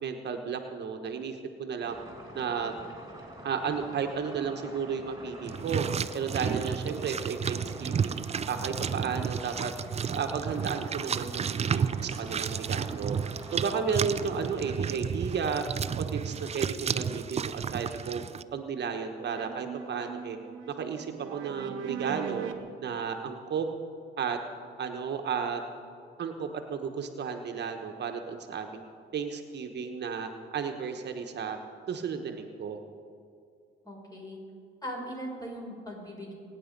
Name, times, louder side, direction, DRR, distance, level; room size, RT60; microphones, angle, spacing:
voice 1, 0.0-1.9 2.3-2.7 3.4-5.8 6.1-8.1 8.5-9.7 10.1-13.2 13.5-15.6 16.0-18.2 18.5-20.4 20.7-22.5 22.8-23.7 24.2-24.4 24.8-25.6 26.2-28.8 29.1-31.6 31.9-32.8, right 6 dB, 60° right, 5 dB, 1.2 m, -33 dB
sound 1, 1.8-14.6, right 1 dB, 15° right, 3.8 m, -46 dB
sound 2, 5.5-18.4, right 7 dB, 30° right, 0.5 m, -32 dB
sound 3, 14.9-16.0 19.2-22.6, right 7 dB, 90° right, 1.1 m, -41 dB
voice 2, 33.8-34.4 34.8-36.3, equal, 20° left, -1 dB, 4.9 m, -39 dB
23.0 x 9.4 x 5.3 m, 2.3 s
cardioid pair, 90°, 20 cm